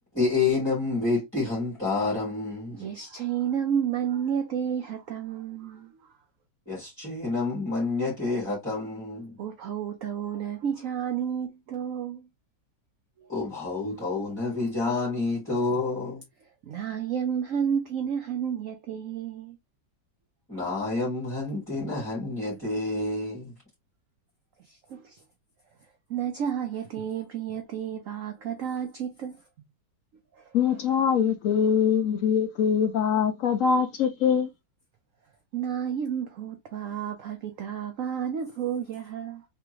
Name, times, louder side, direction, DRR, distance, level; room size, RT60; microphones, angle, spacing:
voice 1, 0.1-2.9 6.7-9.4 13.3-16.2 20.5-23.5, left 3 dB, 5° left, 1.9 m, -28 dB
voice 2, 2.7-6.1 9.4-12.3 13.2-13.3 16.6-19.6 20.5-20.6 24.6-25.2 26.1-29.4 30.3-30.8 35.5-39.4, right 8 dB, 65° right, 0.9 m, -31 dB
voice 3, 30.5-34.5, left 7 dB, 75° left, 0.7 m, -23 dB
3.6 x 3.4 x 3.0 m
omnidirectional pair, 1.9 m